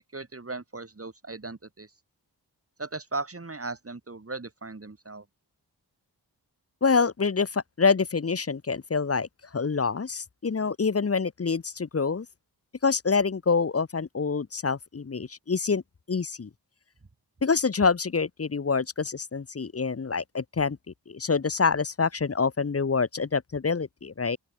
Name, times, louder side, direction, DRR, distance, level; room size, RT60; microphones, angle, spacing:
voice 1, 0.1-1.9 2.8-5.2, right 3 dB, 35° right, 4.3 m, -37 dB
voice 2, 6.8-9.3 9.5-12.3 12.8-15.8 16.1-16.5 17.4-20.8 21.1-24.4, left 5 dB, 35° left, 1.0 m, -26 dB
open air
cardioid pair, 60°, 41 cm